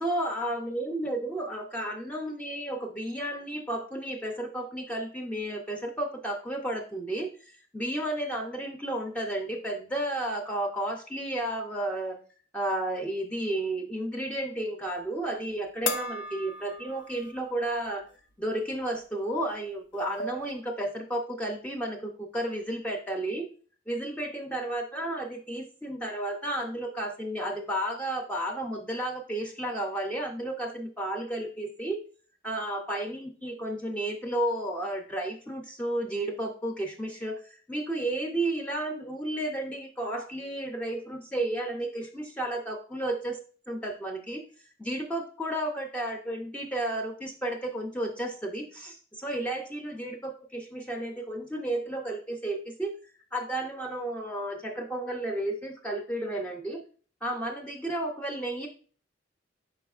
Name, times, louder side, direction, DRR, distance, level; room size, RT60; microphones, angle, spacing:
voice 1, 0.0-12.2 12.5-18.1 18.4-23.5 23.9-32.0 32.4-43.4 43.7-44.4 44.8-53.0 53.3-56.8 57.2-58.7, right 1 dB, 5° left, 1 dB, 0.4 m, -32 dB
sound 1, 15.8-17.5 17.9-18.0 19.5-19.6 19.9-20.6, left 3 dB, 65° left, 0.5 m, -36 dB
5.4 x 4.1 x 2.3 m, 0.43 s
head